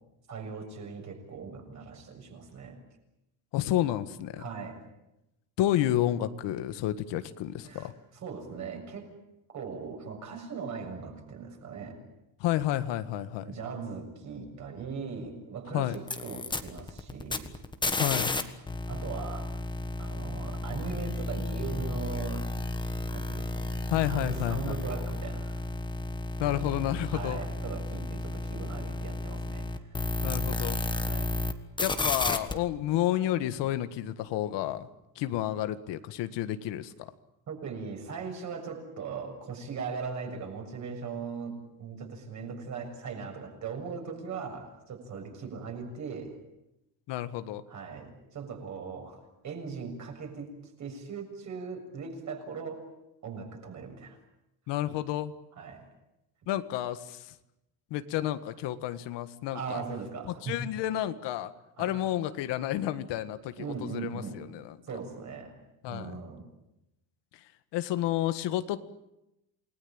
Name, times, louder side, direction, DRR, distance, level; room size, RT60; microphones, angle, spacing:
voice 1, 0.3-2.8 4.4-4.8 7.7-7.9 8.2-9.1 9.5-12.0 13.4-17.5 18.9-19.5 20.0-22.5 23.1-23.8 24.1-25.6 27.1-30.0 31.0-31.3 37.5-46.3 47.7-49.2 49.4-50.5 50.8-52.8 53.2-54.2 55.6-55.9 59.5-60.6 61.8-62.0 63.6-64.4 64.8-65.5 65.9-66.4, right 5 dB, 40° right, 3 dB, 6.8 m, -39 dB
voice 2, 3.5-4.4 5.6-7.9 12.4-13.5 15.7-16.0 18.0-18.4 23.9-24.8 26.4-27.4 30.2-30.8 31.8-34.9 35.2-37.1 47.1-47.6 54.7-55.3 56.5-57.3 57.9-59.8 60.4-61.5 61.8-64.8 65.8-66.2 67.7-68.8, left 13 dB, 75° left, 11 dB, 1.8 m, -30 dB
sound 1, 15.9-18.4 18.7-31.5 31.8-32.5, left 2 dB, 10° left, 1.5 m, -32 dB
28.5 x 20.5 x 8.9 m, 0.89 s
cardioid pair, 170°, 42 cm